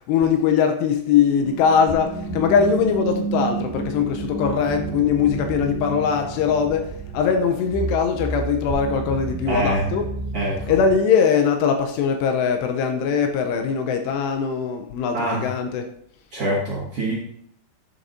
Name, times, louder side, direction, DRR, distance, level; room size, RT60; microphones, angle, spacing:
voice 1, 0.1-10.1 10.7-15.9, left 6 dB, 80° left, 2.7 m, -21 dB
sound 1, 1.4-11.0, right 3 dB, ahead, 2.2 m, -31 dB
voice 2, 9.5-9.9 10.3-10.7 15.1-15.5 16.3-17.1, right 1 dB, 50° right, 1.9 m, -25 dB
10.0 x 7.1 x 2.6 m
omnidirectional pair, 5.1 m